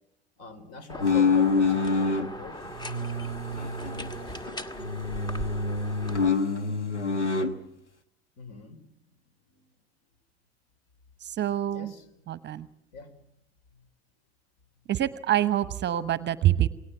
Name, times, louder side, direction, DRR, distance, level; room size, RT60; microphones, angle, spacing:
voice 1, 0.4-2.7 8.4-9.7 11.7-12.1 12.9-13.3 13.7-13.9, left 4 dB, 50° left, 12 dB, 4.1 m, -45 dB
sound 1, 0.9-6.3, equal, 10° left, 1.4 m, -39 dB
sound 2, 1.0-2.3 2.8-4.5 4.8-7.5, left 4 dB, 90° left, 1.4 m, -26 dB
voice 2, 11.2-11.9 12.3-12.7 14.9-16.7, right 12 dB, 30° right, 16 dB, 1.0 m, -26 dB
28.0 x 18.0 x 8.1 m, 0.83 s
figure-of-eight pair, 70°, 34 cm